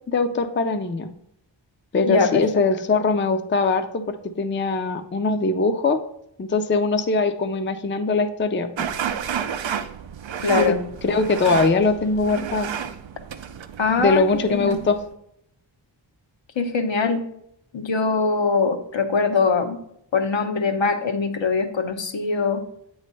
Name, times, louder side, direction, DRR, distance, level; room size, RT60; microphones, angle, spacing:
voice 1, 0.1-1.1 1.9-6.0 6.4-8.9 10.6-10.7 11.0-12.7 14.0-15.0, left 3 dB, 25° left, 8 dB, 0.5 m, -21 dB
voice 2, 2.0-2.4 10.4-10.8 13.8-14.2 14.5-14.8 16.6-17.2 17.7-19.8 20.1-22.6, left 4 dB, 75° left, 5 dB, 0.8 m, -22 dB
sound 1, 8.8-15.1, right 8 dB, 75° right, 0.5 m, -31 dB
8.1 x 3.2 x 5.3 m, 0.77 s
wide cardioid pair, 75°, 46 cm